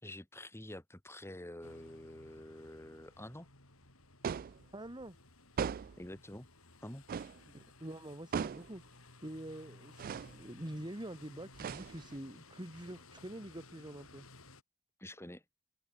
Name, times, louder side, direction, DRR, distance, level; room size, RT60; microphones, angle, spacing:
voice 1, 0.0-3.5 6.0-6.5 6.8-7.0 15.0-15.4, left 1 dB, 10° left, 3.8 m, -48 dB
sound 1, 1.6-14.6, left 3 dB, 80° left, 8.0 m, -58 dB
sound 2, 4.2-4.6 5.6-6.1 7.1-7.4 8.3-8.7 10.0-10.4 11.5-12.2, right 6 dB, 45° right, 0.3 m, -38 dB
voice 2, 4.7-5.2 7.5-8.8 9.2-14.3, right 1 dB, 20° right, 1.9 m, -46 dB
head